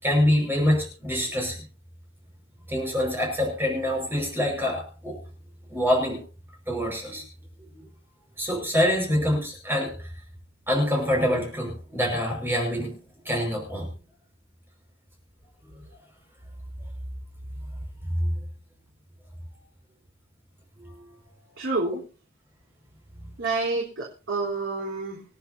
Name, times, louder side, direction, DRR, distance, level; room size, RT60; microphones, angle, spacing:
voice 1, 0.0-1.7 2.7-5.2 5.7-6.2 6.7-7.2 8.4-10.1 10.7-12.9 13.2-13.9 18.2-18.3 20.8-20.9 23.2-23.3, equal, 10° right, 0 dB, 5.5 m, -25 dB
voice 2, 21.6-22.0 23.4-25.2, right 3 dB, 65° right, -3 dB, 3.9 m, -28 dB
28.0 x 10.0 x 2.8 m, 0.34 s
head